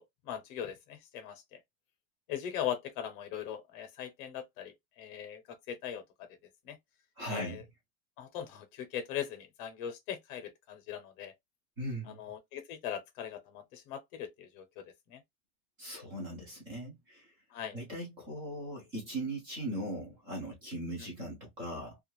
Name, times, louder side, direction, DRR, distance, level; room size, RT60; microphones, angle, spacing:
voice 1, 0.0-1.6 2.3-6.0 6.6-6.8 7.3-7.6 8.2-11.3 12.1-15.2 17.5-17.8 21.0-21.1, left 9 dB, 40° left, 0.7 m, -40 dB
voice 2, 7.2-7.6 11.8-12.2 15.8-17.3 17.7-22.0, right 1 dB, 15° right, 0.3 m, -39 dB
2.4 x 2.3 x 3.0 m
supercardioid pair, 180°, 42 cm